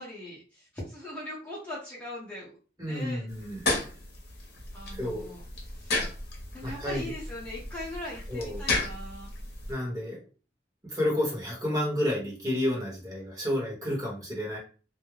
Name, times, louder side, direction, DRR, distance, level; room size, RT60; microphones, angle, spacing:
voice 1, 0.0-3.2 4.7-6.1 6.5-9.3, left 1 dB, 10° left, -6 dB, 0.7 m, -41 dB
voice 2, 2.8-3.8 5.0-5.3 6.6-7.0 8.3-8.6 9.7-10.2 10.8-14.6, left 1 dB, 20° right, -3 dB, 0.9 m, -30 dB
sound 1, 3.3-9.7, left 2 dB, 65° left, 0.8 m, -34 dB
2.3 x 2.0 x 3.0 m, 0.36 s
head